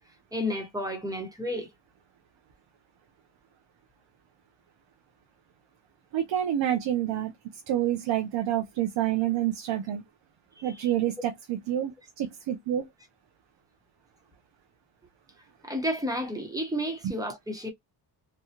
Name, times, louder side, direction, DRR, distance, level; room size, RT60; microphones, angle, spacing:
voice 1, 0.3-1.7 10.6-10.9 15.6-17.7, equal, 10° right, 1.0 m, -31 dB
voice 2, 6.1-7.3 7.7-10.0 10.6-12.9, right 11 dB, 85° right, 0.7 m, -28 dB
3.2 x 2.2 x 2.8 m
cardioid pair, 105°, 43 cm